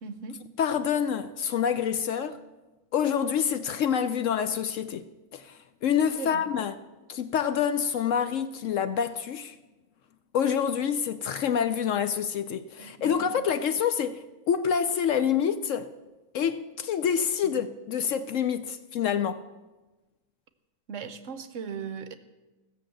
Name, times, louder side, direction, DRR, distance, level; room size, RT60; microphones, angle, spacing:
voice 1, 0.0-0.4 6.2-6.5 12.8-13.3 17.4-17.6 20.9-22.1, right 6 dB, 60° right, 1.1 m, -38 dB
voice 2, 0.6-2.4 2.9-5.1 5.3-6.8 7.1-9.6 10.3-15.9 16.3-19.4, left 8 dB, 65° left, 0.9 m, -27 dB
15.5 x 7.1 x 7.6 m
omnidirectional pair, 1.6 m